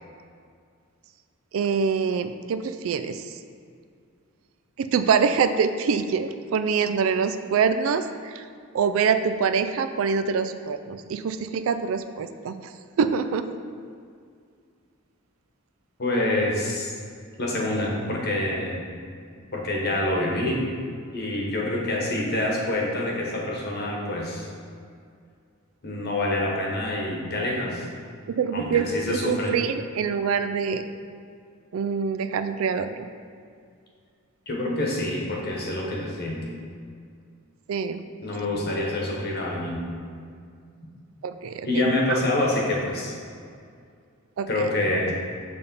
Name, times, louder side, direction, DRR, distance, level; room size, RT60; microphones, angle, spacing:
voice 1, 1.5-3.4 4.8-8.5 8.7-12.7 13.0-13.5 28.3-30.8 31.7-33.1 37.7-38.0 41.2-42.2 44.4-44.7, right 6 dB, 65° right, 10 dB, 0.3 m, -25 dB
voice 2, 16.0-16.9 17.4-18.8 19.5-20.7 21.1-24.5 25.8-27.8 28.5-29.5 34.5-36.4 38.2-39.8 41.6-43.1 44.5-45.1, left 1 dB, 45° left, -2 dB, 1.1 m, -26 dB
6.8 x 3.4 x 5.3 m, 2.2 s
head